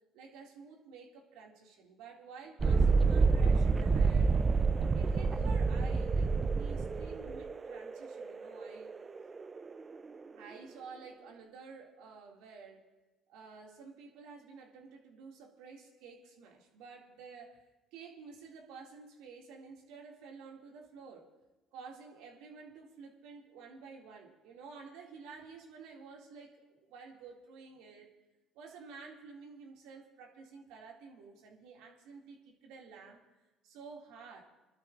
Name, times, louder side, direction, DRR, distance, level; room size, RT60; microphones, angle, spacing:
voice 1, 0.1-4.3 4.9-8.9 10.3-12.8 13.3-17.6 17.9-21.3 21.7-28.1 28.5-33.2 33.6-34.4, right 5 dB, 80° right, 0 dB, 2.2 m, -51 dB
Thunderstorm, 2.6-10.0, right 4 dB, 30° right, 0.4 m, -28 dB
28.0 x 12.0 x 2.5 m, 1.1 s
supercardioid pair, 70°, 0 cm